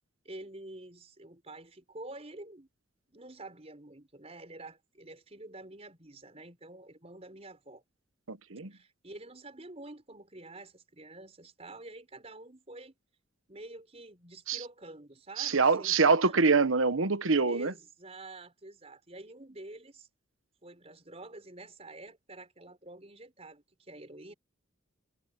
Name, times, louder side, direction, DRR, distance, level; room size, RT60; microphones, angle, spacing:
voice 1, 0.2-2.7 3.1-7.8 8.7-12.9 13.5-16.4 17.5-20.1 20.6-24.3, right 2 dB, 30° right, 5.0 m, -48 dB
voice 2, 8.3-8.7 14.5-14.6 15.4-17.7, right 4 dB, 85° right, 1.1 m, -25 dB
head